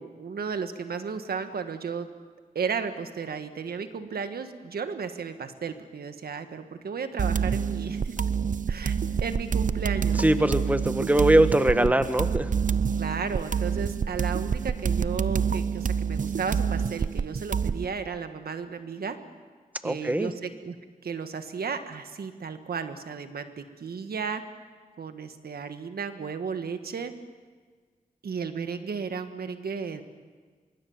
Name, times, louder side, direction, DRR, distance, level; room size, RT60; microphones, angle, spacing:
voice 1, 0.0-2.1 2.5-8.1 8.7-8.9 9.2-10.2 11.7-11.9 13.0-19.2 19.8-20.7 21.0-24.4 25.0-27.1 28.2-30.0, right 5 dB, 90° right, 8 dB, 1.6 m, -34 dB
sound 1, 7.2-17.8, right 6 dB, 55° right, 0.6 m, -27 dB
voice 2, 10.2-12.5 19.8-20.3, right 1 dB, 10° right, 10 dB, 1.4 m, -22 dB
24.5 x 23.0 x 7.3 m, 1.5 s
cardioid pair, 60°, 16 cm